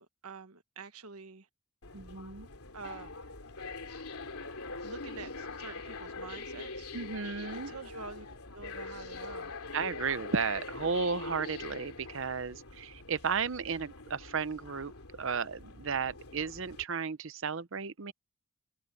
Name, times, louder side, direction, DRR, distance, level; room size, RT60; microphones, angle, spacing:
voice 1, 0.0-1.5 2.7-3.1 4.8-6.9 7.4-8.3 8.5-9.5, right 4 dB, 85° right, 1.4 m, -46 dB
sound 1, 1.8-16.8, left 3 dB, 80° left, 3.3 m, -44 dB
voice 2, 1.9-2.5 6.9-7.7 9.7-14.9 15.2-18.1, right 5 dB, 60° right, 0.7 m, -34 dB
head